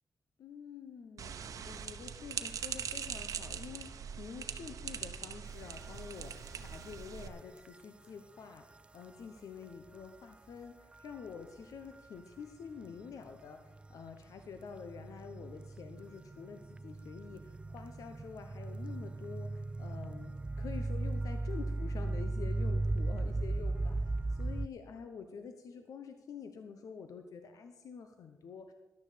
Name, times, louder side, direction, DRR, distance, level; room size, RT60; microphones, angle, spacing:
voice 1, 0.4-1.3 1.6-8.6 8.9-20.3 20.6-24.0 24.3-28.7, left 6 dB, 80° left, 6 dB, 0.9 m, -47 dB
sound 1, 1.2-7.3, right 7 dB, 75° right, 0.8 m, -42 dB
sound 2, 5.9-6.0 6.6-6.7 7.6-7.7 10.9-11.3 12.8-12.9 13.7-24.7, right 2 dB, 20° right, 0.3 m, -36 dB
13.5 x 11.0 x 5.1 m, 1.1 s
cardioid pair, 100°, 6 cm